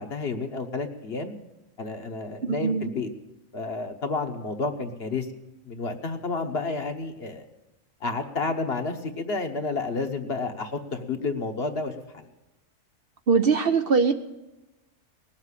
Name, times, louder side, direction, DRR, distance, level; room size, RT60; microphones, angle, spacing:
voice 1, 0.0-1.4 1.8-3.1 3.5-5.3 5.6-7.5 8.0-12.3, left 3 dB, 50° left, 6 dB, 1.3 m, -30 dB
voice 2, 2.4-2.8 13.3-14.1, right 5 dB, 55° right, 7 dB, 0.8 m, -21 dB
19.0 x 7.5 x 9.8 m, 1.0 s
omnidirectional pair, 1.3 m